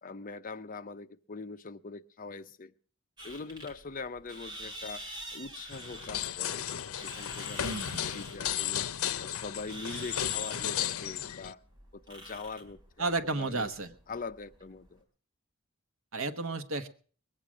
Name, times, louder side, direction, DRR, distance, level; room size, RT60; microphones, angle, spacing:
voice 1, 0.0-2.7 3.2-5.0 5.3-6.7 7.0-8.8 9.2-11.6 11.9-13.1 13.4-13.7 14.1-15.0, left 4 dB, 40° left, 10 dB, 0.7 m, -42 dB
sound 1, 3.2-15.0, equal, 20° right, 3.5 m, -47 dB
sound 2, 5.7-11.5, left 10 dB, 90° left, 0.6 m, -34 dB
voice 2, 7.6-8.1 13.0-13.9 16.1-16.9, right 3 dB, 65° right, 9 dB, 1.2 m, -32 dB
21.0 x 8.8 x 6.2 m, 0.43 s
head